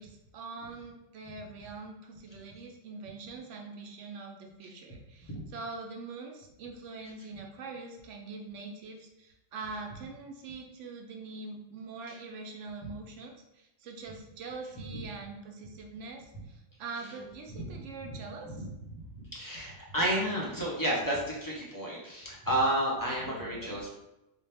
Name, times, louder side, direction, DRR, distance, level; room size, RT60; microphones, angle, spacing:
voice 1, 0.0-18.6 23.3-23.9, right 3 dB, 75° right, 1 dB, 0.9 m, -43 dB
voice 2, 17.5-18.2 18.4-18.7 19.0-23.9, right 1 dB, 20° left, -4 dB, 0.6 m, -32 dB
4.1 x 2.2 x 3.3 m, 0.91 s
omnidirectional pair, 1.3 m